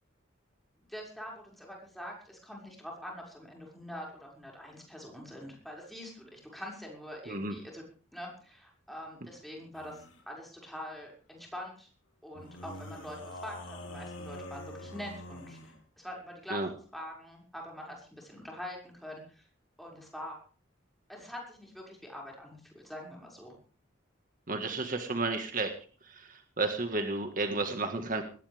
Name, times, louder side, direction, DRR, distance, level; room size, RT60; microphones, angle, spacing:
voice 1, 0.9-7.8 8.1-11.9 12.2-16.6 16.9-19.4 19.8-20.4 21.1-23.5, equal, ahead, -2 dB, 6.2 m, -44 dB
sound 1, 9.7-10.2 12.3-15.8, left 1 dB, 90° left, 3.5 m, -45 dB
voice 2, 24.5-25.7 26.1-28.2, right 3 dB, 45° right, 6 dB, 1.8 m, -32 dB
20.0 x 17.0 x 3.6 m, 0.41 s
head